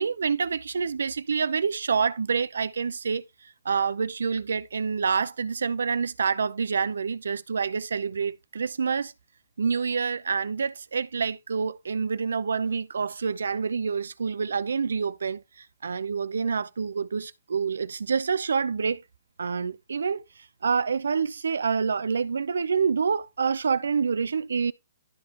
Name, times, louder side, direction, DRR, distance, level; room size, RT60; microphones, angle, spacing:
voice 1, 0.0-3.2 3.6-9.1 9.6-19.0 19.4-20.2 20.6-24.7, right 5 dB, 85° right, 0.7 m, -27 dB
12.0 x 5.1 x 2.9 m
hypercardioid pair, 150°, 0 cm